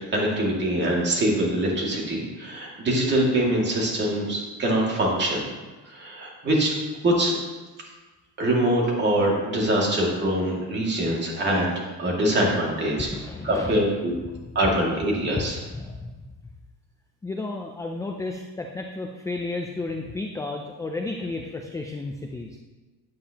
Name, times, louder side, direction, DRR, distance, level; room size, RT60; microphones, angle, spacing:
voice 1, 0.1-5.5 5.9-6.7 7.0-7.3 8.4-11.7 12.0-13.1 13.4-14.2 14.6-15.6, right 1 dB, 30° right, -3 dB, 2.2 m, -23 dB
voice 2, 13.1-13.8 14.3-14.5 15.4-16.1 17.2-22.5, left 3 dB, 10° left, 2 dB, 0.4 m, -32 dB
9.1 x 8.5 x 2.9 m, 1.3 s
cardioid pair, 150°, 37 cm